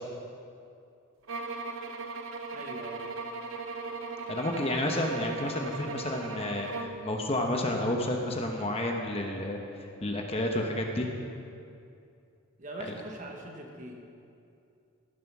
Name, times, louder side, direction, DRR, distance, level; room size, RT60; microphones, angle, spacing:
sound 1, 1.3-7.0, right 3 dB, 75° right, 0.8 m, -38 dB
voice 1, 2.5-3.1 12.6-14.0, right 1 dB, 35° right, 1 dB, 1.3 m, -42 dB
voice 2, 4.3-11.1, left 1 dB, 30° left, 2 dB, 1.0 m, -31 dB
16.0 x 7.5 x 6.0 m, 2.5 s
head